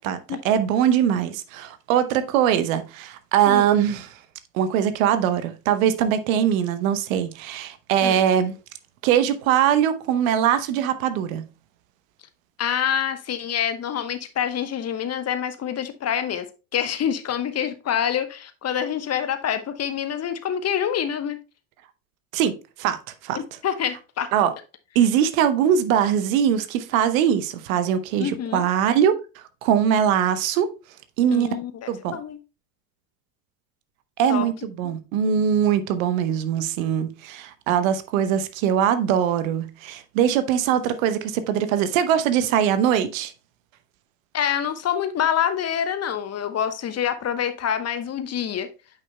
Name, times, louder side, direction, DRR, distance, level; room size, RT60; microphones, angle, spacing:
voice 1, 0.4-4.1 4.5-8.5 9.0-11.5 22.3-23.0 23.2-23.4 24.3-24.5 24.9-29.1 29.6-30.7 31.2-31.6 31.9-32.2 34.2-43.3, right 9 dB, 70° right, 0.9 m, -21 dB
voice 2, 12.6-16.4 16.7-21.4 23.3-24.3 28.2-28.6 31.3-32.4 34.3-34.5 44.3-48.7, left 9 dB, 35° left, 1.0 m, -26 dB
9.1 x 5.6 x 2.2 m
hypercardioid pair, 65°, 43 cm